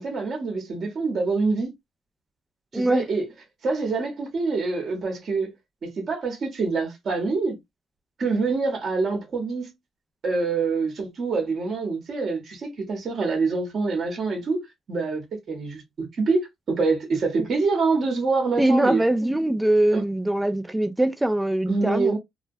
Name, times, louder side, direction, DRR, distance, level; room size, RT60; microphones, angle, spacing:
voice 1, 0.0-1.7 2.7-3.3 3.6-5.5 5.8-7.6 8.2-9.7 10.2-14.6 14.9-19.0 19.9-20.0 21.7-22.2, right 4 dB, 55° right, 0.9 m, -25 dB
voice 2, 2.7-3.0 18.6-22.1, right 1 dB, 10° right, 0.4 m, -22 dB
2.2 x 2.2 x 2.5 m
cardioid pair, 90°, 0 cm